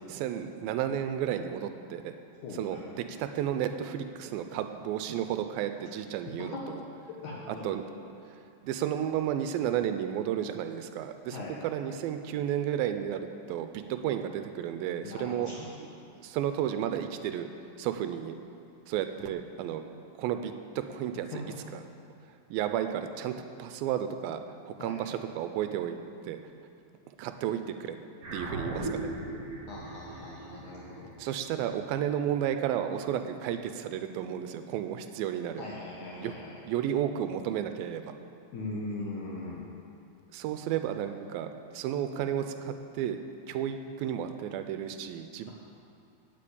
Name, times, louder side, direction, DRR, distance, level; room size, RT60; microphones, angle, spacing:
voice 1, 0.0-2.1 2.5-6.9 7.5-7.8 8.6-15.5 15.8-15.9 16.2-17.5 17.8-18.4 18.9-19.8 20.2-21.8 22.5-26.4 27.1-28.0 28.3-29.1 31.2-35.7 36.2-36.3 36.6-38.1 40.3-43.2 43.5-45.5, right 10 dB, 85° right, 8 dB, 2.4 m, -32 dB
voice 2, 2.4-2.8 6.4-6.8 7.2-7.7 11.3-11.5 15.0-15.7 21.3-21.4 24.8-25.0 29.7-31.1 35.6-36.6 38.5-39.6, left 2 dB, 65° left, -5 dB, 2.4 m, -40 dB
sound 1, 28.2-32.8, right 2 dB, 45° right, 3.1 m, -39 dB
9.1 x 8.6 x 8.5 m, 2.6 s
omnidirectional pair, 4.2 m